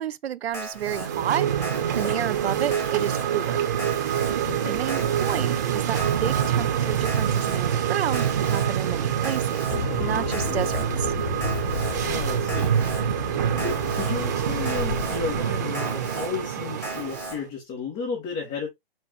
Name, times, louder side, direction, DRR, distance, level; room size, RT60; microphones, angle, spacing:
voice 1, 0.0-3.6 4.7-9.6 10.0-11.1, right 10 dB, 90° right, 0.5 m, -31 dB
Alarm, 0.5-1.1 1.6-2.2 2.7-3.2 3.8-4.3 4.9-5.4 6.0-6.5 7.0-7.6 8.1-8.7 9.2-9.8 10.3-10.8 11.4-11.9 12.5-13.0 13.6-14.1 14.7-15.2 15.7-16.3 16.8-17.4, equal, 10° left, 0.7 m, -37 dB
sound 1, 0.8-17.4, right 9 dB, 20° right, 0.3 m, -26 dB
voice 2, 4.4-4.8 12.0-12.7 13.6-18.7, left 5 dB, 25° left, 2.3 m, -33 dB
sound 2, 9.7-15.5, left 8 dB, 65° left, 0.6 m, -33 dB
4.5 x 3.8 x 2.5 m
hypercardioid pair, 145°, 30 cm